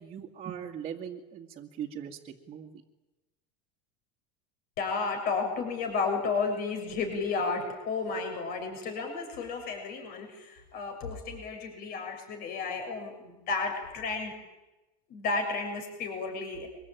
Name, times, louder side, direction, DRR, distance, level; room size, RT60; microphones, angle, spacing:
voice 1, 0.0-2.8, right 8 dB, 30° right, -2 dB, 2.1 m, -40 dB
voice 2, 4.8-14.3 15.1-16.7, left 4 dB, 45° left, 4 dB, 6.9 m, -32 dB
24.5 x 22.5 x 9.1 m, 1.0 s
supercardioid pair, 145°, 21 cm